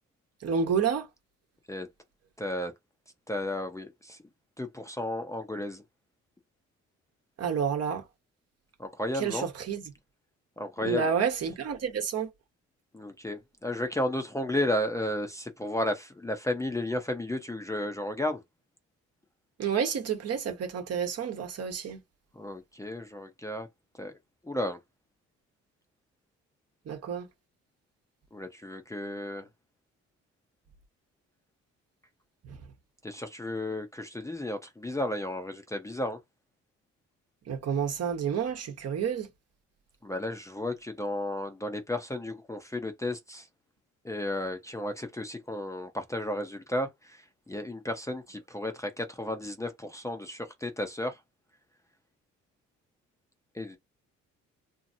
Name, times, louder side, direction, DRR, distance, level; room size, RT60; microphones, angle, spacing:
voice 1, 0.4-1.1 7.4-8.0 9.1-9.8 10.8-12.3 19.6-22.0 26.9-27.3 32.4-32.6 37.5-39.3, right 7 dB, 55° right, 1.0 m, -29 dB
voice 2, 2.4-2.7 3.3-4.2 4.6-5.8 8.8-9.5 10.6-11.1 12.9-18.4 22.3-23.7 23.9-24.1 24.4-24.8 28.3-29.5 33.0-36.2 40.0-43.5 44.0-51.2 53.5-53.8, left 1 dB, 10° left, 0.6 m, -33 dB
2.8 x 2.5 x 2.6 m
cardioid pair, 90°, 30 cm